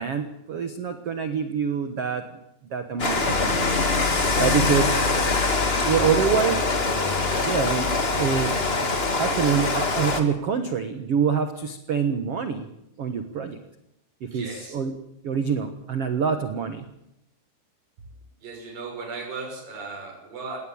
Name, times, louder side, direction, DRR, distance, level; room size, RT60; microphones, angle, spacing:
voice 1, 0.0-2.2 2.7-3.7 4.4-5.1 5.8-6.6 7.1-8.5 9.2-12.7 13.0-13.6 14.2-14.9 15.2-16.8, right 7 dB, 70° right, 8 dB, 1.4 m, -26 dB
Rain, 3.0-10.2, left 3 dB, 85° left, 0.5 m, -23 dB
voice 2, 5.8-6.6 14.2-14.8 18.4-20.6, right 4 dB, 55° right, 1 dB, 7.5 m, -37 dB
19.0 x 18.0 x 8.8 m, 0.81 s
omnidirectional pair, 4.9 m